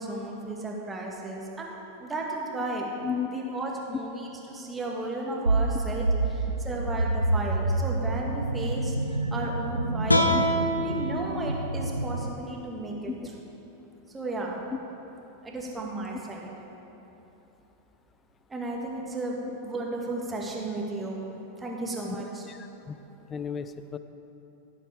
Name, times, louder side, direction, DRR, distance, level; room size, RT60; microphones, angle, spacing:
voice 1, 0.0-2.9 3.3-9.0 9.3-10.3 10.8-13.1 14.1-14.6 15.4-16.5 18.5-19.4 19.6-21.2 21.6-22.5, right 2 dB, 15° right, -2 dB, 1.9 m, -34 dB
sound 1, 5.5-12.3, right 2 dB, 85° right, 0.4 m, -28 dB
sound 2, 10.1-13.3, equal, 85° left, 0.8 m, -28 dB
voice 2, 22.5-23.0 23.3-24.0, left 7 dB, 20° left, 11 dB, 0.5 m, -34 dB
15.5 x 7.9 x 4.9 m, 3.0 s
figure-of-eight pair, 90°, 0 cm